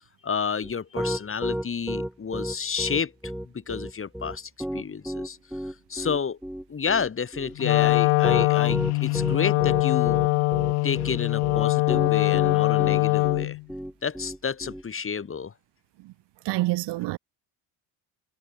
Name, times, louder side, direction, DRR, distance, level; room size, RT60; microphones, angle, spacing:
voice 1, 0.2-3.1 3.5-5.4 5.9-6.4 6.7-10.2 10.8-13.6 14.0-15.5, left 6 dB, 25° left, 2.1 m, -30 dB
Piano, 0.6-14.8, equal, ahead, 1.2 m, -32 dB
Wind instrument woodwind instrument, 7.6-13.6, left 24 dB, 80° left, 0.9 m, -22 dB
voice 2, 16.4-17.2, right 19 dB, 60° right, 0.6 m, -27 dB
cardioid pair, 110°, 48 cm